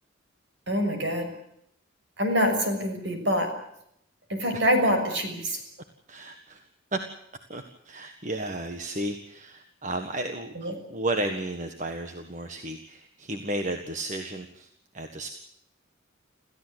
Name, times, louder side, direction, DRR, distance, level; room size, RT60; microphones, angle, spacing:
voice 1, 0.7-1.3 2.2-3.5 4.3-5.6 10.5-10.7, equal, 60° right, 6 dB, 6.4 m, -25 dB
voice 2, 6.1-7.0 7.5-14.7 14.9-15.3, right 1 dB, 40° right, 6 dB, 1.6 m, -33 dB
27.5 x 15.5 x 8.2 m, 0.74 s
head